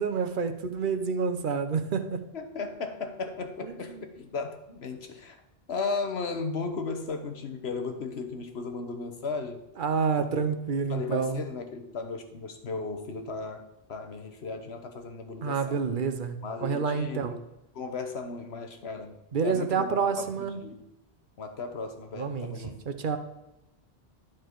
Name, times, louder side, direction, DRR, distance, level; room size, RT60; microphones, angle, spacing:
voice 1, 0.0-2.2 3.6-3.7 9.8-11.4 15.4-17.4 19.3-20.6 22.2-23.2, right 5 dB, 55° right, 9 dB, 0.9 m, -28 dB
voice 2, 2.3-5.4 5.7-9.6 10.2-10.3 10.9-15.8 16.4-17.4 17.7-19.2 19.4-20.0 20.4-20.8 21.4-22.8, left 4 dB, 80° left, 6 dB, 1.3 m, -35 dB
12.0 x 4.6 x 4.6 m, 0.92 s
omnidirectional pair, 1.1 m